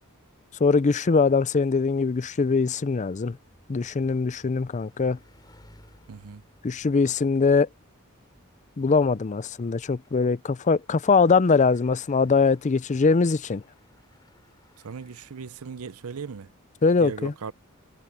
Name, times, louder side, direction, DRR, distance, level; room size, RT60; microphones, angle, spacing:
voice 1, 0.6-3.4 3.7-5.2 6.6-7.7 8.8-13.6 16.8-17.3, left 4 dB, 35° left, 0.4 m, -22 dB
Bicycle, 1.8-15.9, left 1 dB, 20° left, 5.9 m, -61 dB
voice 2, 6.1-6.4 14.8-16.5 17.0-17.5, right 6 dB, 85° right, 0.6 m, -37 dB
head